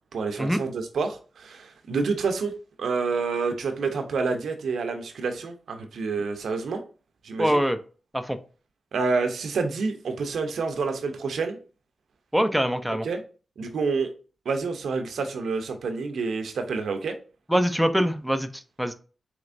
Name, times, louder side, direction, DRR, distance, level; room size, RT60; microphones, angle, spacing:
voice 1, 0.1-2.5 2.8-6.8 7.2-7.6 8.9-11.6 13.0-13.2 13.6-14.1 14.5-17.1, right 4 dB, 80° right, 6 dB, 0.6 m, -28 dB
voice 2, 7.4-7.8 8.1-8.4 12.3-13.1 17.5-18.9, equal, 5° right, 8 dB, 0.5 m, -24 dB
4.3 x 3.0 x 2.5 m, 0.36 s
cardioid pair, 55°, 0 cm